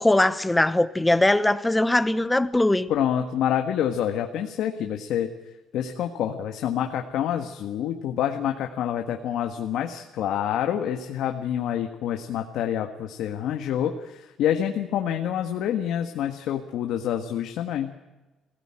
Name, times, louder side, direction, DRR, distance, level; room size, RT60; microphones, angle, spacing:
voice 1, 0.0-2.9, left 1 dB, 10° left, 14 dB, 0.9 m, -21 dB
voice 2, 2.9-5.3 5.7-18.0, left 10 dB, 70° left, 5 dB, 1.6 m, -27 dB
21.5 x 17.0 x 8.9 m, 1.1 s
cardioid pair, 135°, 0 cm